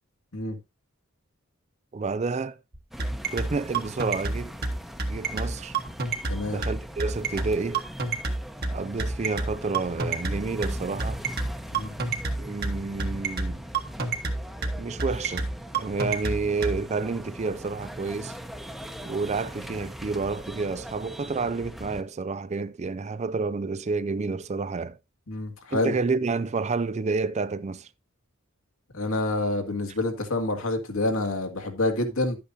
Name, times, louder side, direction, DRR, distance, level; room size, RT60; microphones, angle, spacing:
voice 1, 1.9-2.6 3.3-4.5 5.1-5.8 6.5-7.8 8.7-11.2 12.4-13.6 14.8-18.4 19.0-25.0 25.7-27.9, right 4 dB, 30° right, 0.4 m, -29 dB
sound 1, 2.7-16.8, right 3 dB, 50° right, 1.4 m, -28 dB
sound 2, 2.9-22.0, equal, ahead, 0.9 m, -41 dB
voice 2, 25.3-26.0 28.9-32.4, left 2 dB, 80° left, 2.1 m, -27 dB
11.5 x 8.4 x 2.7 m
head